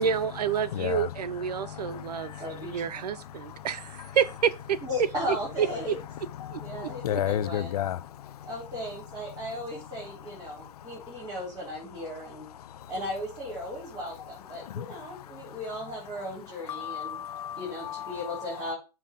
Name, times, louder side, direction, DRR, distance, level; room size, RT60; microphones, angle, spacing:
voice 1, 0.0-2.3 2.6-4.8 5.6-5.7 6.5-7.2, right 7 dB, 85° right, 0.8 m, -29 dB
voice 2, 0.7-1.1 1.5-2.4 3.4-3.7 6.4-8.5 10.6-11.1 12.7-12.8 14.6-15.6 16.7-18.4, left 10 dB, 70° left, 0.6 m, -34 dB
voice 3, 2.4-3.0 4.8-6.0 6.5-7.8 8.4-12.5 12.9-17.2 17.6-18.7, left 1 dB, 20° right, 3.6 m, -36 dB
7.6 x 2.9 x 5.2 m
hypercardioid pair, 150°, 20 cm